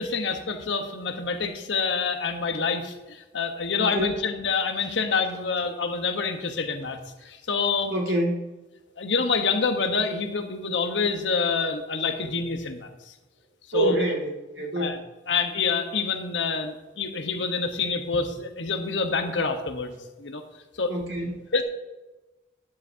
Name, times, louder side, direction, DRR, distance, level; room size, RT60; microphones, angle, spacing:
voice 1, 0.0-7.9 9.0-13.1 13.7-14.0 14.8-15.0 15.3-20.4 20.8-20.9 21.5-21.6, left 4 dB, 80° left, 6 dB, 1.2 m, -27 dB
voice 2, 3.8-4.2 7.9-8.5 13.7-15.0 20.9-21.4, right 1 dB, 65° right, -1 dB, 2.2 m, -27 dB
12.0 x 9.9 x 2.8 m, 1.1 s
head